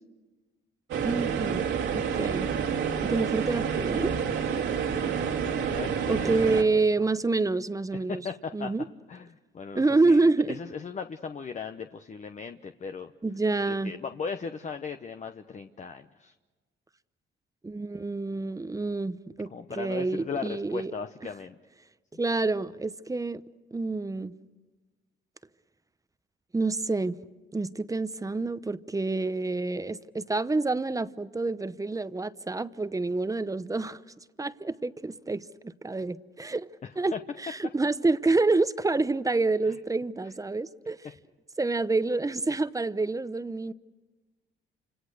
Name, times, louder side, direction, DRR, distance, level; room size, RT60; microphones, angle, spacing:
sound 1, 0.9-6.6, right 7 dB, 80° right, 2.5 m, -28 dB
voice 1, 1.0-1.7 1.9-2.5 3.0-4.1 6.1-8.2 8.5-8.9 9.7-10.6 13.2-13.9 17.6-20.9 22.2-23.4 23.7-24.3 26.5-27.2 27.5-34.0 34.4-36.7 37.0-37.1 37.4-41.1 41.6-43.7, right 3 dB, 15° right, 0.8 m, -27 dB
voice 2, 5.3-7.1 8.1-8.7 9.1-13.1 13.6-16.3 19.5-21.5 36.8-37.2 39.7-39.8, left 5 dB, 35° left, 0.9 m, -38 dB
29.0 x 26.0 x 6.6 m
cardioid pair, 90°, 20 cm